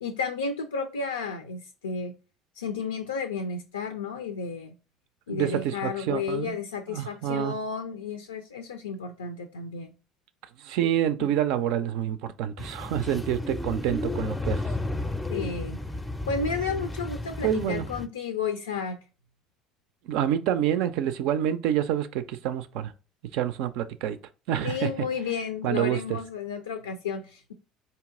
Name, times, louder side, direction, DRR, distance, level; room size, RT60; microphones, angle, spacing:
voice 1, 0.0-2.1 2.6-4.7 5.3-9.9 11.2-11.3 15.3-15.8 16.3-19.0 24.6-27.5, left 5 dB, 75° left, 0.4 m, -32 dB
voice 2, 5.3-6.6 6.9-7.6 10.6-14.6 17.4-17.8 20.1-22.9 23.3-24.2 24.5-24.9 25.6-26.2, right 10 dB, 55° right, 0.4 m, -27 dB
sound 1, 12.6-18.1, left 2 dB, 10° left, 0.5 m, -32 dB
4.4 x 2.8 x 3.6 m
figure-of-eight pair, 60°, 0 cm